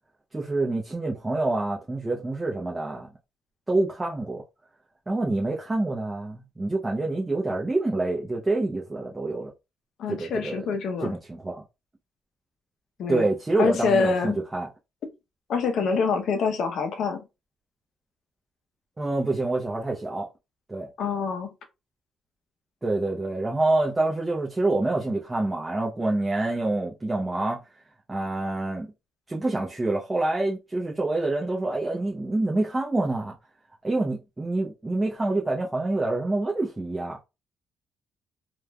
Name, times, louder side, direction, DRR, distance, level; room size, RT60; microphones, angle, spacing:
voice 1, 0.3-3.1 3.7-4.4 5.1-9.5 10.1-10.7 11.0-11.6 13.1-14.7 19.0-20.3 20.7-20.9 22.8-27.6 28.1-28.9 29.3-33.4 33.8-37.2, right 2 dB, 20° right, 0.7 m, -27 dB
voice 2, 10.0-11.1 13.0-13.3 13.6-14.4 15.5-17.2 21.0-21.5, left 5 dB, 70° left, 0.6 m, -25 dB
3.1 x 2.4 x 2.2 m
cardioid pair, 90°, 0 cm